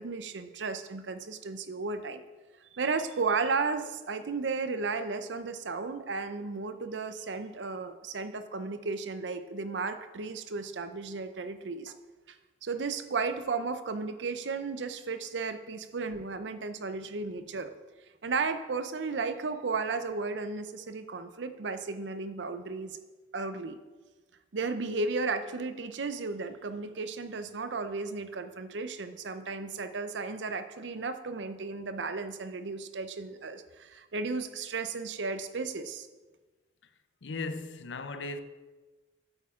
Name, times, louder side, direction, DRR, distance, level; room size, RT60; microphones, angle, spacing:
voice 1, 0.0-2.2 2.7-11.9 12.3-12.4 12.6-17.7 18.2-23.0 23.3-23.8 24.5-36.1, right 4 dB, 80° right, 0.6 m, -34 dB
voice 2, 37.2-38.4, left 3 dB, 85° left, 0.6 m, -37 dB
8.8 x 7.9 x 3.7 m
head